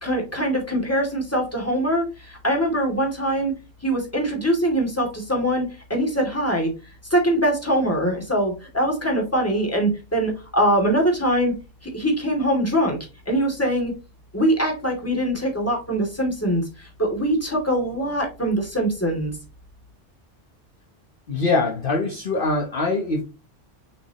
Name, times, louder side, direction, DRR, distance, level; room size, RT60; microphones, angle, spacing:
voice 1, 0.0-3.5 3.8-6.7 7.1-11.5 11.8-13.0 13.3-13.9 14.3-19.3, right 1 dB, 10° left, 0 dB, 2.5 m, -23 dB
voice 2, 21.3-23.2, left 3 dB, 45° left, 2 dB, 1.2 m, -23 dB
6.5 x 6.1 x 2.9 m, 0.30 s
omnidirectional pair, 1.3 m